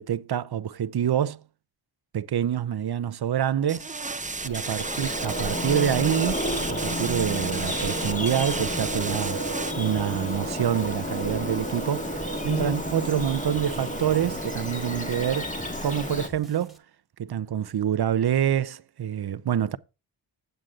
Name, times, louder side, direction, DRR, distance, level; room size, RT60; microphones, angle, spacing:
voice 1, 0.0-1.4 2.1-3.9 4.4-6.4 6.7-9.4 9.8-15.5 15.8-16.8 17.2-19.8, right 9 dB, 60° right, 0.7 m, -26 dB
sound 1, 3.7-9.7, right 3 dB, 15° right, 0.6 m, -33 dB
Bird vocalization bird call bird song, 4.2-16.3, equal, 15° left, 1.7 m, -31 dB
sound 2, 10.8-16.8, left 1 dB, ahead, 2.1 m, -50 dB
9.0 x 8.1 x 3.7 m
cardioid pair, 65°, 45 cm